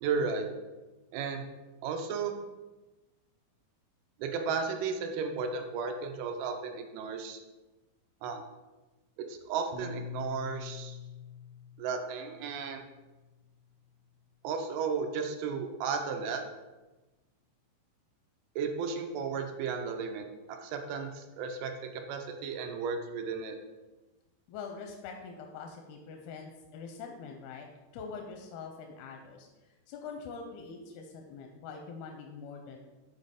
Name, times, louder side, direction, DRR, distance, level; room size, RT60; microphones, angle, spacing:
voice 1, 0.0-0.5 1.1-1.5 1.8-2.4 4.2-7.4 8.2-8.4 9.2-11.0 11.8-12.8 14.4-16.4 18.6-23.6, right 5 dB, 90° right, 5 dB, 2.6 m, -34 dB
Piano, 9.7-14.2, left 6 dB, 75° right, 2.4 m, -45 dB
voice 2, 24.5-27.7 27.9-32.8, left 5 dB, 85° left, 2 dB, 2.5 m, -44 dB
7.4 x 4.1 x 5.1 m, 1.1 s
omnidirectional pair, 4.4 m